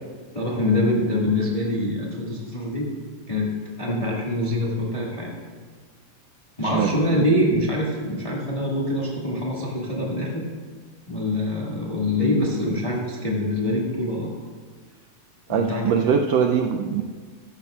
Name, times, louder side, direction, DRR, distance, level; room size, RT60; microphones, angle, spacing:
voice 1, 0.3-2.9 3.3-5.3 6.6-10.4 11.1-14.3 15.5-16.1, left 1 dB, 20° left, -4 dB, 1.0 m, -24 dB
voice 2, 15.5-17.0, right 7 dB, 80° right, 3 dB, 1.5 m, -22 dB
15.0 x 12.5 x 2.4 m, 1.5 s
omnidirectional pair, 3.4 m